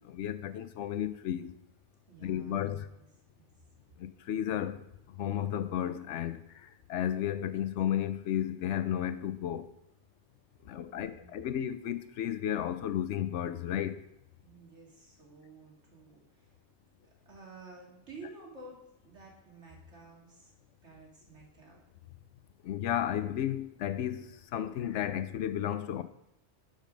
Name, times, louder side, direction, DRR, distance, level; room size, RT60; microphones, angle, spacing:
voice 1, 0.1-1.5 2.2-2.9 4.3-4.8 5.2-6.4 6.9-9.7 10.7-13.9 22.6-24.2 24.5-26.0, left 10 dB, 85° left, 1.0 m, -33 dB
voice 2, 2.1-3.0 3.3-3.5 10.8-11.5 14.4-16.6 17.3-20.5 20.8-21.8, right 3 dB, 80° right, 2.7 m, -52 dB
11.5 x 5.3 x 5.2 m
omnidirectional pair, 1.2 m